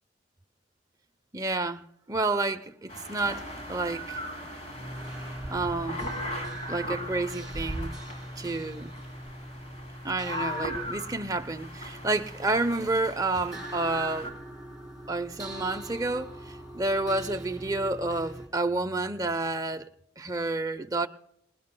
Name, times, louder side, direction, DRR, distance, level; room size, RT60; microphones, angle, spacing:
voice 1, 1.3-4.2 5.5-6.1 6.7-8.0 8.4-8.9 10.0-14.3 15.1-19.9 20.2-21.1, right 2 dB, 20° right, 0.7 m, -30 dB
sound 1, 2.9-14.3, equal, 40° left, 3.4 m, -38 dB
sound 2, 3.2-18.5, right 1 dB, 5° right, 3.9 m, -43 dB
27.5 x 20.0 x 2.2 m
head